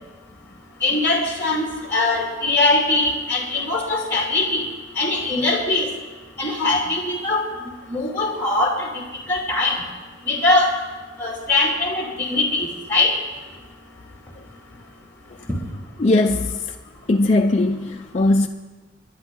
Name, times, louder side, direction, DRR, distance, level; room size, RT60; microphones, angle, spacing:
voice 1, 0.8-4.7 5.0-5.9 6.4-7.4 7.9-9.0 9.3-9.8 10.3-10.7 11.2-13.1, left 2 dB, 10° left, 2.3 m, -21 dB
voice 2, 16.0-16.8 17.1-18.5, left 2 dB, 35° left, 0.5 m, -19 dB
30.0 x 11.0 x 3.7 m
head